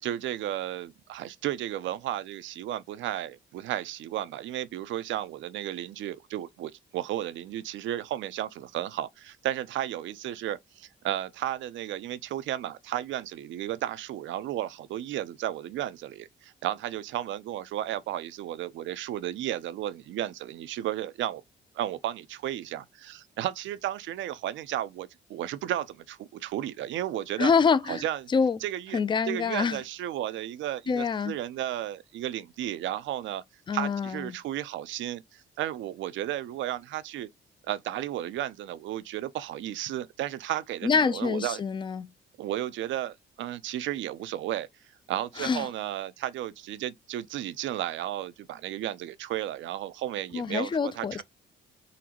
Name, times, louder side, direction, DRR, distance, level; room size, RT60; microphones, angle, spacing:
voice 1, 0.0-21.4 21.7-27.5 27.8-28.3 28.6-29.0 29.3-33.4 33.7-37.3 37.7-41.6 42.4-44.7 45.1-51.2, right 12 dB, 75° right, 0.4 m, -33 dB
voice 2, 27.4-28.0 28.3-28.6 28.9-29.8 30.9-31.3 33.7-34.3 40.8-42.1 45.4-45.7 50.3-51.2, left 5 dB, 25° left, 0.3 m, -26 dB
3.9 x 2.1 x 2.8 m
cardioid pair, 90°, 20 cm